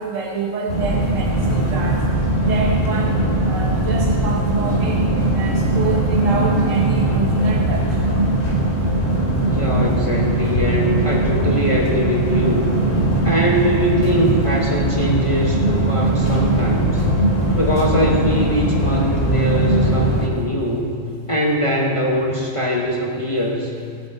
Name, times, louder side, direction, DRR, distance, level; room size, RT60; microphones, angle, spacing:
voice 1, 0.0-2.0 2.4-3.2 3.5-5.0 5.3-7.9, right 5 dB, 80° right, 0 dB, 1.3 m, -27 dB
sound 1, 0.7-20.3, right 1 dB, 80° left, 2.5 m, -19 dB
voice 2, 9.5-12.7 13.2-17.0 17.6-20.9 21.3-23.7, equal, 25° left, -2 dB, 1.0 m, -22 dB
16.5 x 8.7 x 4.3 m, 2.2 s
omnidirectional pair, 1.3 m